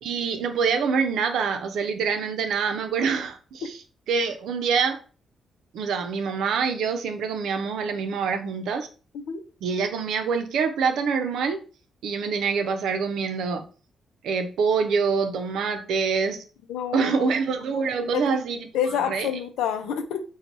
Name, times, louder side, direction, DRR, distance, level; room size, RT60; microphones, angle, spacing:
voice 1, 0.0-3.7 4.1-5.0 5.7-8.9 9.6-11.6 12.0-13.6 14.2-16.4 16.9-18.7 19.1-19.3, right 5 dB, 75° right, 0.6 m, -25 dB
voice 2, 16.7-17.3 18.0-18.3 18.7-20.2, left 8 dB, 80° left, 0.5 m, -28 dB
4.5 x 2.3 x 4.0 m
hypercardioid pair, 45°, 0 cm